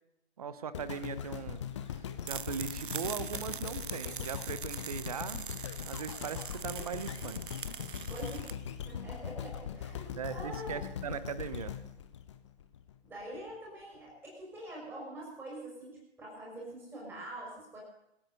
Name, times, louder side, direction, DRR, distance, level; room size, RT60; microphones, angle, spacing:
voice 1, 0.4-5.5 5.8-7.4 10.2-11.8, right 7 dB, 35° right, 14 dB, 1.0 m, -39 dB
sound 1, 0.7-12.9 13.5-13.6, left 8 dB, 25° left, 1.0 m, -41 dB
sound 2, 2.2-8.5, right 7 dB, 50° right, 0.5 m, -42 dB
voice 2, 8.1-10.8 13.0-17.8, right 1 dB, 5° right, -4 dB, 6.0 m, -45 dB
26.5 x 9.3 x 5.5 m, 0.83 s
figure-of-eight pair, 140°, 34 cm